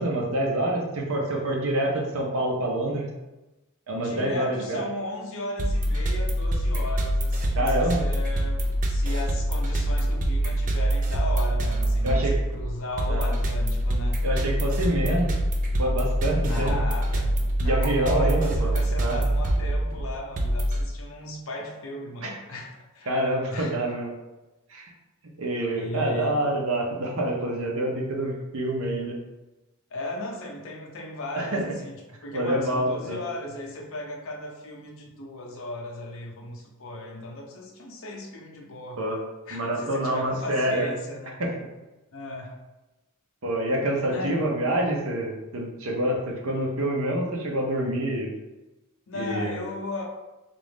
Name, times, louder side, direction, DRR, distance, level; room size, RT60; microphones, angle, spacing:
voice 1, 0.0-3.1 3.9-4.8 7.6-8.0 12.0-12.3 13.1-13.3 14.2-15.3 15.8-16.8 17.6-18.7 19.0-19.2 22.2-22.3 23.1-24.1 24.7-24.8 25.4-29.2 31.3-31.6 32.3-33.2 39.0-39.2 39.5-40.9 41.4-41.5 43.4-48.3 49.2-49.6, right 1 dB, 70° right, -1 dB, 0.8 m, -26 dB
voice 2, 3.9-14.2 16.4-17.4 17.6-23.1 23.5-23.8 25.8-26.4 29.9-39.1 39.5-41.4 42.1-42.6 44.1-44.4 49.1-50.0, left 2 dB, 65° left, 0 dB, 0.7 m, -36 dB
sound 1, 5.6-20.8, right 1 dB, 40° right, 0.5 m, -25 dB
3.7 x 2.5 x 3.5 m, 1.0 s
head